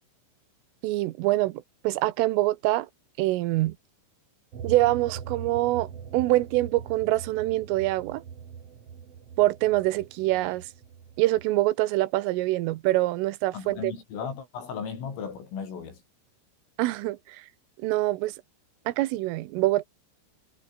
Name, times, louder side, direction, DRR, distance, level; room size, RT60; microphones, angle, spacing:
voice 1, 0.8-2.9 3.2-3.8 4.6-5.9 6.1-8.2 9.4-10.7 11.2-13.9 16.8-17.5 17.8-18.4 18.9-19.8, right 17 dB, 85° right, 3.6 m, -25 dB
sound 1, 4.5-11.4, right 7 dB, 45° right, 2.3 m, -41 dB
voice 2, 13.5-16.0, left 6 dB, 85° left, 8.4 m, -36 dB
omnidirectional pair, 5.7 m